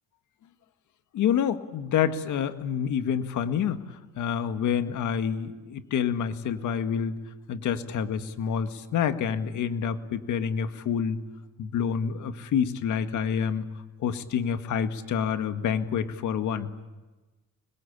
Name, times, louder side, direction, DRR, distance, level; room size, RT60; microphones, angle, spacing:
voice 1, 1.1-7.2 7.5-11.2 11.6-13.7 14.0-16.7, left 7 dB, 75° left, 8 dB, 1.9 m, -28 dB
26.0 x 22.0 x 8.7 m, 1.2 s
cardioid pair, 90°, 30 cm